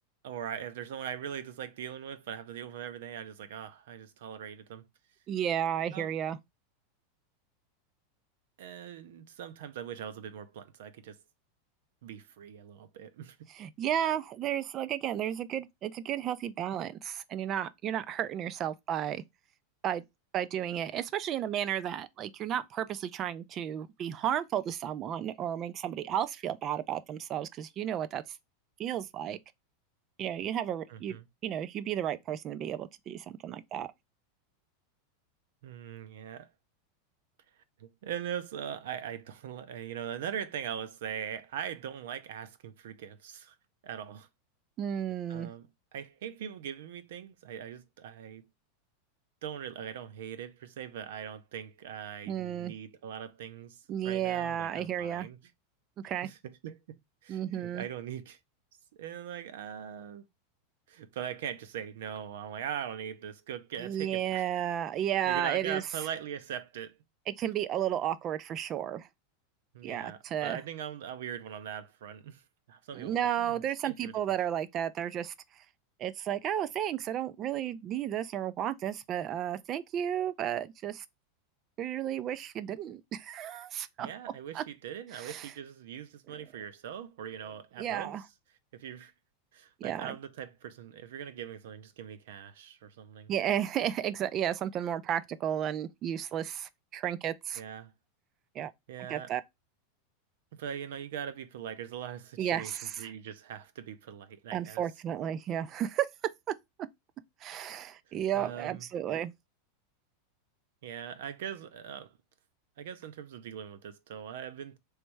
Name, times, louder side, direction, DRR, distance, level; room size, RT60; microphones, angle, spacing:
voice 1, 0.2-4.9 5.9-6.1 8.6-11.2 12.0-13.5 30.9-31.2 35.6-36.5 37.8-43.5 43.8-44.3 45.3-48.4 49.4-55.4 56.2-58.4 58.9-60.3 60.9-64.6 65.3-67.0 69.7-72.4 72.7-74.1 84.0-88.1 88.7-89.1 89.5-93.3 97.5-97.9 98.9-99.3 100.5-104.8 108.1-108.9 110.8-112.1 112.8-114.8, right 9 dB, 70° right, 0.6 m, -41 dB
voice 2, 5.3-6.4 13.5-19.2 19.8-20.0 20.3-28.2 28.8-29.4 30.2-31.2 31.4-33.9 44.8-45.5 52.3-52.7 53.9-55.3 56.0-56.3 57.3-57.8 63.8-65.8 67.3-69.1 69.8-70.6 72.9-75.3 76.0-81.0 81.8-84.1 84.5-84.6 85.1-85.5 87.8-88.2 89.8-90.2 93.3-97.6 98.5-98.7 99.1-99.4 102.4-103.1 104.5-106.1 107.4-109.3, right 10 dB, 25° right, 0.3 m, -33 dB
3.2 x 3.1 x 4.5 m
supercardioid pair, 170°, 0 cm